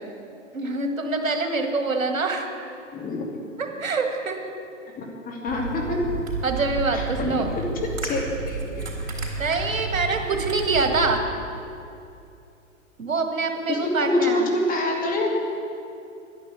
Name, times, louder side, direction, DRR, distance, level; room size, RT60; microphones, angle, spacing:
voice 1, 0.5-2.5 3.6-4.5 6.4-7.5 9.4-11.2 13.0-14.5, right 3 dB, 85° right, 5 dB, 1.7 m, -25 dB
voice 2, 2.9-3.3 5.3-6.0 6.9-7.5 8.0-8.2 8.5-9.1 13.7-15.4, left 2 dB, 20° left, 0 dB, 2.5 m, -26 dB
sound 1, 5.5-11.2, right 3 dB, 70° right, 3.9 m, -31 dB
11.0 x 10.5 x 8.4 m, 2.6 s
hypercardioid pair, 120°, 40 cm